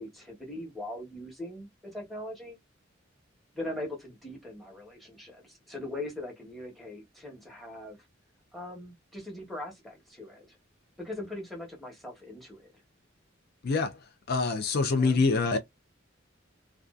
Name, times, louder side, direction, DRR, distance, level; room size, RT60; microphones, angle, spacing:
voice 1, 0.0-2.6 3.5-8.1 8.5-10.6 11.0-12.7 14.9-15.2, left 1 dB, ahead, 1.0 m, -41 dB
voice 2, 13.6-14.0 14.3-15.6, left 4 dB, 50° left, 0.4 m, -25 dB
2.5 x 2.3 x 2.3 m
head